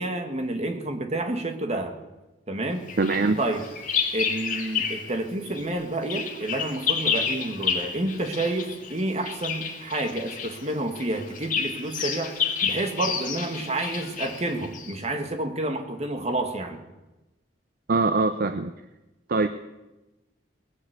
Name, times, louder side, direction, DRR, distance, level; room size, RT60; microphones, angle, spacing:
voice 1, 0.0-1.9 2.5-2.9 3.4-3.7 4.1-12.3 12.6-16.8, right 2 dB, 40° right, 6 dB, 1.8 m, -29 dB
Bird vocalization bird call bird song, 2.9-5.1 5.4-15.0, left 6 dB, 45° left, 2.4 m, -30 dB
voice 2, 3.0-3.4 17.9-18.7 19.3-19.5, right 3 dB, 55° right, 10 dB, 0.6 m, -22 dB
20.5 x 8.0 x 8.1 m, 1.1 s
head